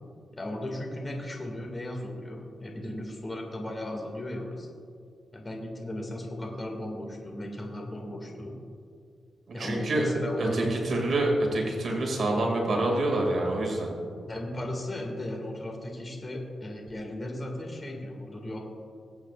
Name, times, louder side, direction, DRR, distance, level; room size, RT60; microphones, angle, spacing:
voice 1, 0.3-4.7 5.3-8.5 9.5-10.6 14.3-18.6, left 1 dB, 25° left, 1 dB, 2.1 m, -36 dB
voice 2, 9.5-10.1 10.4-13.9, right 2 dB, 60° right, 0 dB, 2.2 m, -27 dB
22.0 x 8.2 x 2.5 m, 2.4 s
cardioid pair, 105°, 0 cm